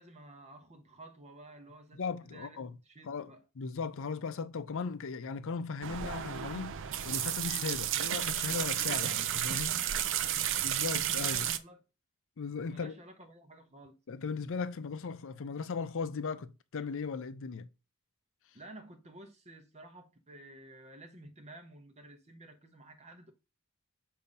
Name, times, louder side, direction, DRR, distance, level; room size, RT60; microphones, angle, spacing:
voice 1, 0.0-3.4 9.7-10.8 11.2-11.8 12.7-14.0 18.5-23.3, right 1 dB, 30° right, 1.0 m, -53 dB
voice 2, 1.9-2.7 3.1-3.3 3.6-6.7 7.0-9.8 10.6-11.5 12.4-13.0 14.1-17.7, left 5 dB, 60° left, 0.5 m, -37 dB
sound 1, 5.8-11.6, right 10 dB, 60° right, 0.5 m, -32 dB
6.8 x 2.7 x 5.3 m
head